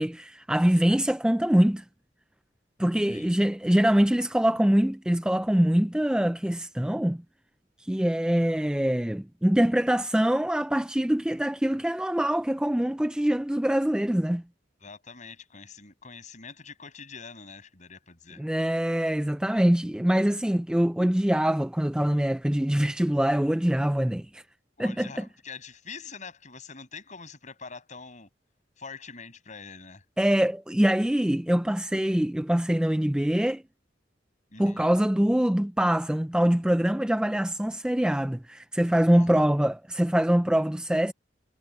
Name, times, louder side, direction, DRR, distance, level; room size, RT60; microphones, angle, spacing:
voice 1, 0.0-1.8 2.8-7.2 7.8-14.4 18.4-24.4 24.8-25.2 30.2-33.6 34.6-41.1, equal, 5° right, 0.4 m, -24 dB
voice 2, 14.8-18.4 24.8-28.3 28.8-30.0 34.5-34.9 39.1-39.4, left 5 dB, 40° left, 6.4 m, -44 dB
head